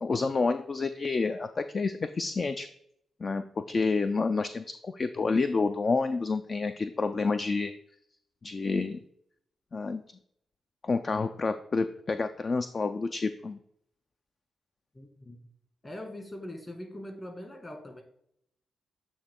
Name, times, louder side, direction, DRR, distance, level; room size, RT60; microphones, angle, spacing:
voice 1, 0.0-2.7 3.2-7.7 8.4-9.0 9.7-10.0 10.8-13.6, left 4 dB, 45° left, 9 dB, 0.3 m, -29 dB
voice 2, 14.9-15.4 15.8-18.0, left 1 dB, 30° left, 3 dB, 1.9 m, -42 dB
8.5 x 3.0 x 3.7 m, 0.71 s
supercardioid pair, 45°, 0 cm